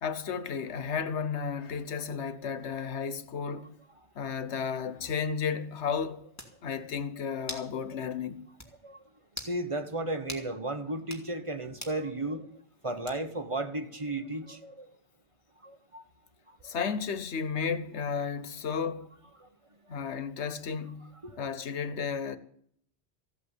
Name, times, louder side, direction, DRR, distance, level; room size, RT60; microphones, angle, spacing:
voice 1, 0.0-3.7 4.1-6.3 6.6-8.5 16.6-19.2 19.9-22.4, left 6 dB, 90° left, 1.3 m, -33 dB
sound 1, 6.4-6.6 7.5-7.7 8.1-8.2 8.6-8.7 9.3-9.6 10.3-10.5 11.0-11.3 11.8-12.0 13.1-13.4, left 1 dB, 15° left, 2.4 m, -41 dB
voice 2, 9.4-12.5 12.8-14.9 15.6-16.0 16.5-16.6 19.4-19.5 21.2-21.4, right 2 dB, 30° right, 1.3 m, -34 dB
15.0 x 8.3 x 8.3 m
omnidirectional pair, 1.1 m